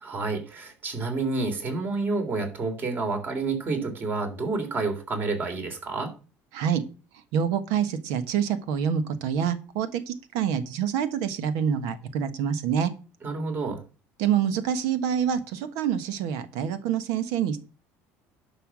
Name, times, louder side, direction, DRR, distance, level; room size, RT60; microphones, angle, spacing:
voice 1, 0.0-6.1 13.2-13.8, right 3 dB, 35° right, 5 dB, 3.4 m, -29 dB
voice 2, 6.5-6.8 7.3-12.9 14.2-17.6, right 8 dB, 80° right, 11 dB, 1.4 m, -26 dB
11.5 x 5.7 x 6.2 m, 0.34 s
cardioid pair, 140°, 6 cm